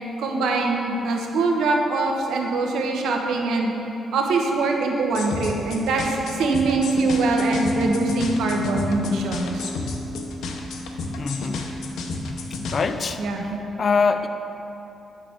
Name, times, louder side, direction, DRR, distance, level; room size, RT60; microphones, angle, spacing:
voice 1, 0.2-3.7 4.1-9.7 13.2-13.6, right 3 dB, 80° right, 1 dB, 0.9 m, -24 dB
sound 1, 5.1-12.8, left 3 dB, 80° left, 0.7 m, -32 dB
Bass guitar, 6.5-12.7, right 2 dB, 50° right, 0.5 m, -28 dB
voice 2, 11.1-11.7 12.7-13.2 13.8-14.3, left 5 dB, 35° left, 8 dB, 0.4 m, -23 dB
9.0 x 6.6 x 3.6 m, 2.9 s
cardioid pair, 145°, 0 cm